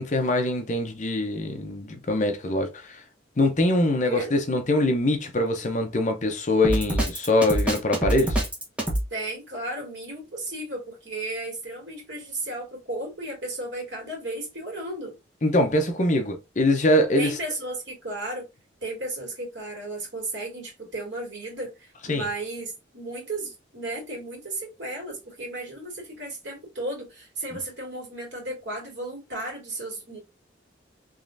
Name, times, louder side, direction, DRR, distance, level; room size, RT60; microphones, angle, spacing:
voice 1, 0.0-3.0 3.4-8.4 15.4-17.4 22.1-22.3, left 1 dB, 40° left, 0.7 m, -23 dB
voice 2, 4.0-4.3 9.1-15.1 17.2-18.5 18.8-30.2, right 2 dB, 75° right, 2.3 m, -34 dB
Drum kit, 6.6-9.1, right 1 dB, 5° right, 1.0 m, -25 dB
3.7 x 3.1 x 2.6 m
head